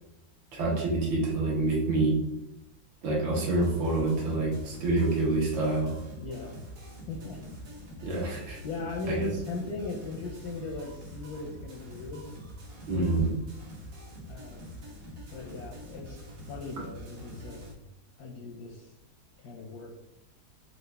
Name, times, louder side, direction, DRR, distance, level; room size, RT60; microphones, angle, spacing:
voice 1, 0.5-2.2 3.0-5.9 8.0-8.6 9.0-9.3 12.9-13.3, right 2 dB, 75° right, -4 dB, 1.9 m, -27 dB
sound 1, 3.4-17.7, equal, 50° right, 1.2 m, -45 dB
voice 2, 6.2-6.6 7.1-7.6 8.6-12.3 12.9-13.2 14.3-14.8 15.3-16.2 16.5-17.6 18.2-18.9 19.4-20.0, left 3 dB, 70° left, 0 dB, 0.9 m, -38 dB
4.4 x 2.5 x 3.2 m, 0.86 s
omnidirectional pair, 2.1 m